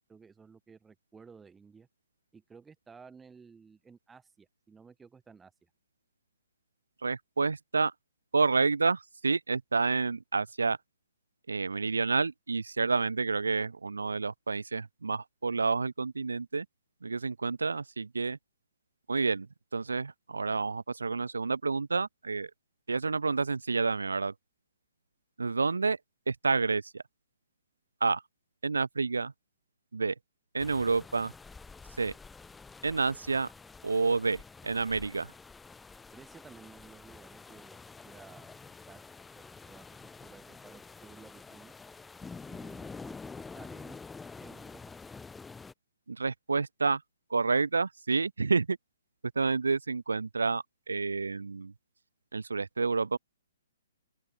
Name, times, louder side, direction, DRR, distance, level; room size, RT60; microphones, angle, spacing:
voice 1, 0.1-1.9 2.3-5.7 36.1-37.8 38.0-38.6 38.9-39.0 39.4-41.7 42.2-44.0 44.4-44.8, right 5 dB, 10° right, 6.9 m, -54 dB
voice 2, 7.0-7.9 8.3-10.8 11.5-16.7 17.0-18.4 19.1-19.5 19.7-22.5 22.9-24.3 25.4-26.0 26.3-27.0 28.0-28.2 28.6-29.3 29.9-30.1 30.5-31.3 32.0-32.1 32.8-33.5 33.8-35.3 46.1-47.0 47.3-48.8 49.4-51.7 52.3-53.2, right 4 dB, 80° right, 0.3 m, -29 dB
sound 1, 30.6-45.7, left 4 dB, 10° left, 1.4 m, -48 dB
open air
figure-of-eight pair, 130°, 0 cm